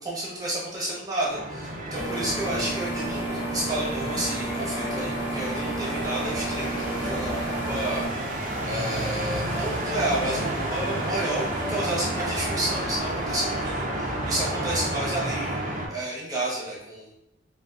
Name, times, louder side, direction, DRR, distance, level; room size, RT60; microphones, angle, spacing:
voice 1, 0.0-8.0 8.6-17.1, right 1 dB, 20° right, -5 dB, 0.8 m, -31 dB
sound 1, 1.3-15.9, right 1 dB, 40° right, 0.5 m, -30 dB
sound 2, 1.9-8.1, right 1 dB, 80° left, 0.9 m, -32 dB
3.4 x 2.4 x 2.4 m, 0.87 s
head